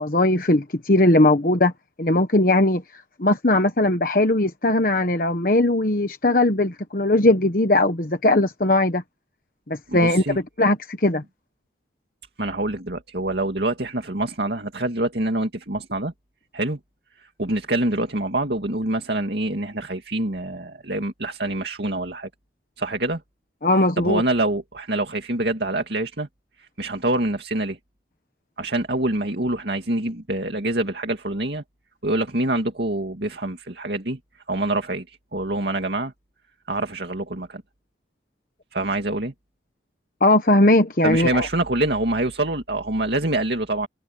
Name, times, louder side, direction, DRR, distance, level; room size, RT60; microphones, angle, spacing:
voice 1, 0.0-1.7 2.0-2.8 3.2-9.0 9.7-10.2 10.6-11.2 23.6-24.2 40.2-41.5, left 2 dB, 50° left, 1.2 m, -19 dB
voice 2, 9.9-10.4 12.4-16.1 16.5-16.8 17.2-22.3 22.8-23.2 24.0-26.3 26.6-27.8 28.6-31.6 32.0-34.2 34.5-36.1 36.7-37.6 38.7-39.3 41.0-43.9, right 2 dB, 65° right, 2.3 m, -25 dB
head